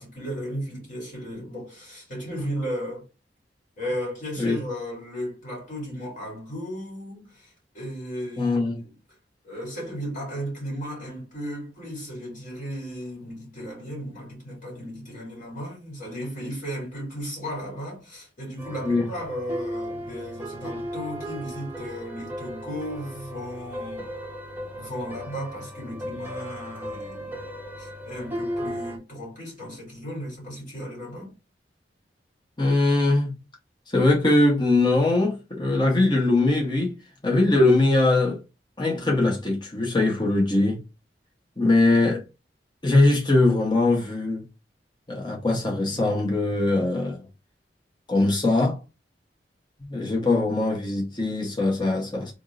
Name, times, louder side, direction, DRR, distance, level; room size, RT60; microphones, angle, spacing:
voice 1, 0.0-3.0 3.8-8.9 9.4-24.1 24.7-27.4 27.8-31.3, equal, 50° left, 2.5 m, -35 dB
voice 2, 8.4-8.8 18.8-19.1 32.6-33.3 33.9-37.0 37.2-38.4 38.8-40.8 41.6-42.2 42.8-44.5 45.1-47.2 48.1-48.8 49.8-52.3, left 2 dB, 25° left, 1.0 m, -21 dB
sound 1, 18.6-29.0, equal, 10° right, 0.8 m, -36 dB
3.6 x 2.5 x 3.7 m
head